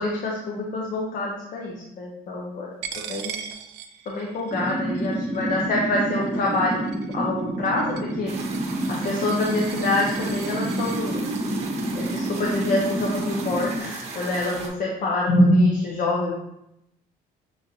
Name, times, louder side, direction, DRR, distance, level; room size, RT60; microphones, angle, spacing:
voice 1, 0.0-2.7 3.1-3.4 4.1-6.8 7.1-8.3 8.9-11.2 11.9-16.3, left 1 dB, 55° left, -2 dB, 0.7 m, -25 dB
Coin (dropping), 2.8-11.0, right 8 dB, 85° right, 0.4 m, -40 dB
sound 1, 4.5-13.8, right 1 dB, 10° right, 0.9 m, -29 dB
sound 2, 8.3-14.7, right 3 dB, 40° right, 0.9 m, -37 dB
6.2 x 2.5 x 2.7 m, 0.82 s
cardioid pair, 110°, 17 cm